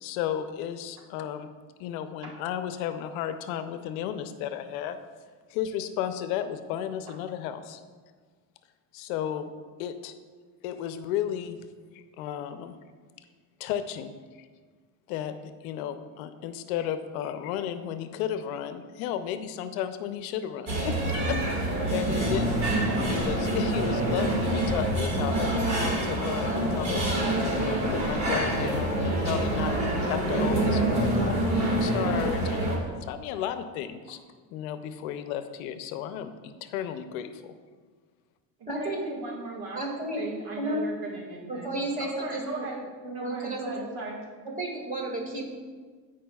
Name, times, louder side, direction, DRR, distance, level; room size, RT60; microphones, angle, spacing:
voice 1, 0.0-1.5 1.8-5.0 5.5-7.8 8.9-9.5 9.8-10.1 10.6-11.6 11.9-12.8 13.6-14.1 15.1-15.4 15.6-22.6 23.1-27.1 27.5-29.7 30.0-32.6 33.0-34.2 34.5-37.5, left 10 dB, 85° left, 10 dB, 0.6 m, -33 dB
sound 1, 20.7-32.8, right 1 dB, 40° right, 2.0 m, -26 dB
voice 2, 21.9-22.6 38.6-39.8 40.2-41.7 42.0-42.8 43.1-44.2, right 2 dB, 65° right, -1 dB, 1.8 m, -38 dB
voice 3, 38.7-39.1 39.7-40.2 40.6-40.8 41.5-42.6 43.0-43.6 44.6-45.5, right 2 dB, 20° right, -1 dB, 2.0 m, -32 dB
12.5 x 4.9 x 2.3 m, 1.5 s
supercardioid pair, 105°, 41 cm